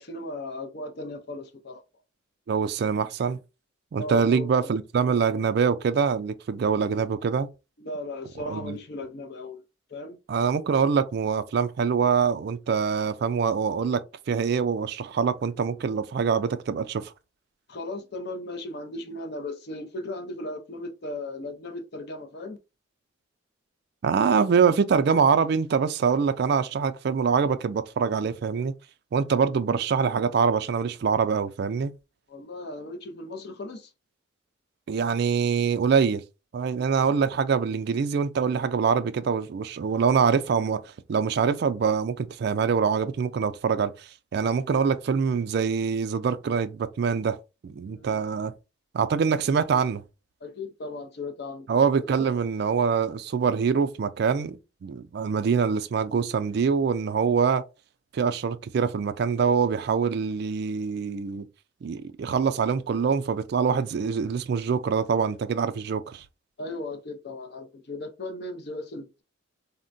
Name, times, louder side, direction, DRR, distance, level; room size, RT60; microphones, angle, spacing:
voice 1, 0.0-1.8 4.0-4.7 7.8-9.6 9.9-10.2 17.7-22.6 32.3-33.9 47.9-48.2 50.4-51.7 52.0-52.3 66.6-69.2, left 2 dB, 55° left, 0.5 m, -37 dB
voice 2, 2.5-3.4 3.9-7.5 8.5-8.8 10.3-17.1 24.0-28.7 29.1-31.9 34.9-36.2 36.5-40.8 41.1-47.4 47.6-48.5 48.9-50.0 51.7-57.6 58.1-61.5 61.8-66.2, right 6 dB, 55° right, 0.3 m, -24 dB
3.6 x 2.1 x 2.5 m
head